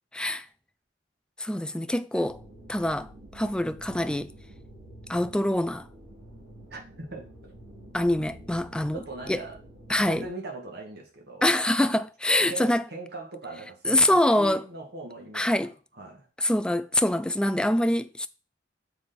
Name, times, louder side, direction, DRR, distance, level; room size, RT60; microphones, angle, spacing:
voice 1, 0.1-0.5 1.4-2.4 2.7-4.3 5.1-5.9 7.9-9.0 9.3-9.4 9.9-10.3 11.4-12.8 13.8-14.7 15.3-15.7 16.4-18.3, left 1 dB, 5° left, 0.4 m, -25 dB
sound 1, 2.2-10.3, right 1 dB, 85° right, 3.4 m, -48 dB
voice 2, 6.7-7.5 8.9-9.6 10.0-11.5 12.5-15.5 16.0-16.3, right 2 dB, 55° right, 1.9 m, -40 dB
7.0 x 4.2 x 5.3 m
head